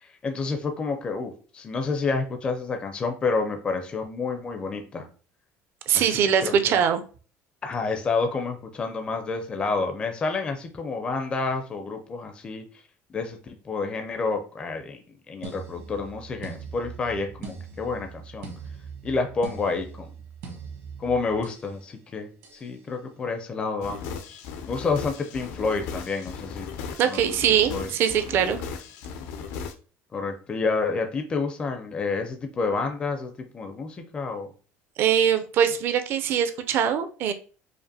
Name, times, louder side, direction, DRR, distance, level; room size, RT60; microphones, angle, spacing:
voice 1, 0.0-5.1 5.9-6.8 7.6-12.6 13.1-15.0 15.3-18.5 19.0-20.1 21.0-26.7 27.0-27.2 27.7-27.9 30.1-34.5, left 4 dB, 20° left, 5 dB, 0.4 m, -29 dB
voice 2, 5.9-7.0 27.0-28.6 35.0-37.3, right 8 dB, 45° right, 9 dB, 0.4 m, -22 dB
sound 1, 15.4-21.7 22.4-22.7, right 5 dB, 70° right, 1.3 m, -41 dB
sound 2, 23.8-29.7, left 6 dB, 75° left, 0.6 m, -37 dB
5.0 x 2.4 x 2.7 m, 0.38 s
cardioid pair, 170°, 5 cm